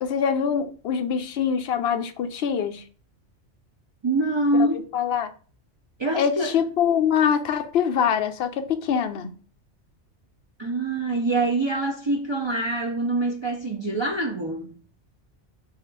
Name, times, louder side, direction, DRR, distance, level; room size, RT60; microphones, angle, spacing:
voice 1, 0.0-2.8 4.5-4.7 4.9-5.3 6.2-9.3, left 7 dB, 65° left, 0.7 m, -24 dB
voice 2, 4.0-4.9 6.0-6.5 10.6-14.7, right 2 dB, 45° right, 0.3 m, -25 dB
3.5 x 2.4 x 4.4 m
omnidirectional pair, 1.2 m